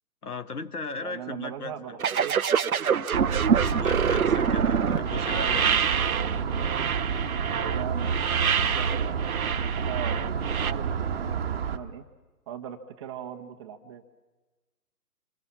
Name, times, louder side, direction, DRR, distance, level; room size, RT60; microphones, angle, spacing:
voice 1, 0.2-1.7 3.7-5.9, left 4 dB, 75° left, 13 dB, 1.5 m, -37 dB
voice 2, 1.0-2.4 4.1-5.4 7.5-12.0 12.5-14.0, right 9 dB, 20° right, 5 dB, 1.1 m, -40 dB
sound 1, 2.0-10.7, right 7 dB, 65° right, 0.8 m, -26 dB
sound 2, 3.1-11.8, right 6 dB, 40° right, 1.3 m, -29 dB
27.5 x 25.0 x 7.4 m, 1.2 s
figure-of-eight pair, 135°, 46 cm